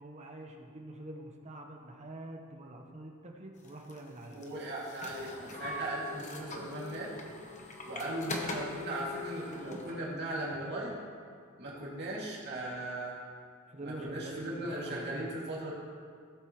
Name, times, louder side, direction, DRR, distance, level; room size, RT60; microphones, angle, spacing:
voice 1, 0.0-4.5 13.7-15.4, right 1 dB, 30° right, 2 dB, 1.1 m, -45 dB
sound 1, 3.6-10.0, left 3 dB, 35° left, 1.0 m, -42 dB
voice 2, 4.3-7.1 7.8-11.0 11.6-13.2 13.8-15.7, right 1 dB, 50° right, -6 dB, 2.5 m, -38 dB
17.0 x 7.9 x 3.2 m, 2.1 s
head